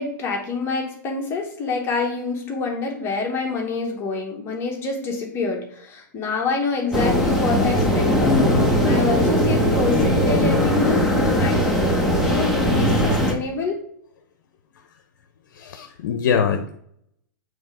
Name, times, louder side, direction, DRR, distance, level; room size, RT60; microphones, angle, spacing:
voice 1, 0.0-8.4 8.8-13.8, left 4 dB, 25° left, 0 dB, 1.2 m, -27 dB
sound 1, 6.9-13.3, equal, ahead, 0.9 m, -19 dB
voice 2, 15.5-16.8, left 7 dB, 65° left, 6 dB, 0.7 m, -23 dB
7.1 x 3.3 x 5.0 m, 0.69 s
hypercardioid pair, 150°, 10 cm